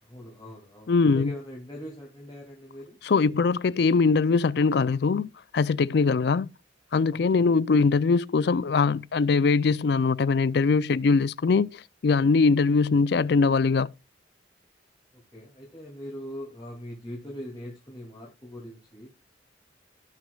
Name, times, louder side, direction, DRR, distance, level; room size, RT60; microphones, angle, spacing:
voice 1, 0.0-3.3 7.1-7.5 15.1-19.1, equal, 25° left, 2.6 m, -42 dB
voice 2, 0.9-1.3 3.0-5.3 5.5-6.5 6.9-13.9, left 4 dB, 60° left, 0.4 m, -22 dB
17.5 x 6.2 x 2.3 m
head